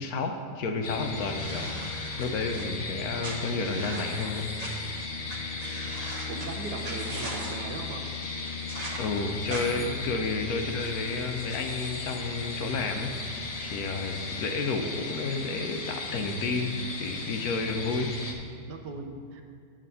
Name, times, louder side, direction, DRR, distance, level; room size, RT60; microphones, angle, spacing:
voice 1, 0.0-5.0 9.0-13.1 13.6-18.1, left 3 dB, 70° left, 5 dB, 1.0 m, -31 dB
sound 1, 0.8-18.3, left 3 dB, 85° left, 0.3 m, -36 dB
sound 2, 1.3-2.6 3.2-4.7 5.3-5.4 5.6-6.5 6.8-7.5 8.7-9.0 9.5-9.6, right 2 dB, 30° right, 0.8 m, -40 dB
voice 2, 6.1-8.1 18.7-19.4, right 3 dB, 75° right, 4 dB, 1.3 m, -38 dB
8.3 x 5.0 x 5.5 m, 2.2 s
omnidirectional pair, 1.8 m